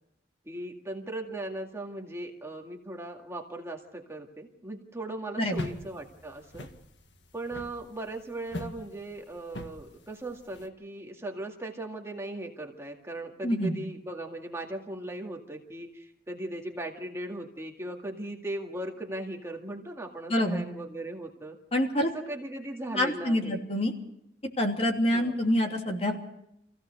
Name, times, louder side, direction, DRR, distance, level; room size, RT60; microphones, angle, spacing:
voice 1, 0.5-6.7 7.3-21.6 22.0-23.6 25.1-25.4, right 1 dB, 15° right, 1 dB, 2.1 m, -38 dB
sound 1, 5.5-10.7, left 1 dB, 75° left, 1.8 m, -42 dB
voice 2, 13.4-13.7 20.3-20.6 21.7-22.1 22.9-23.9 24.6-26.2, left 1 dB, 35° left, 1 dB, 3.0 m, -26 dB
26.0 x 16.5 x 6.6 m, 0.80 s
head